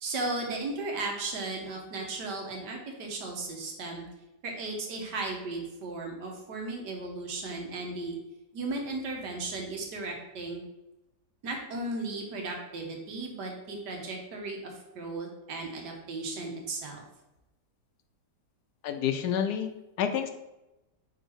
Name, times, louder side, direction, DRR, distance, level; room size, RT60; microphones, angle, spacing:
voice 1, 0.0-4.0 4.4-8.2 8.5-10.6 11.4-17.0, right 2 dB, 80° right, 1 dB, 1.7 m, -35 dB
voice 2, 18.8-20.3, left 8 dB, 75° left, 8 dB, 1.1 m, -29 dB
5.3 x 3.9 x 4.5 m, 0.95 s
omnidirectional pair, 1.8 m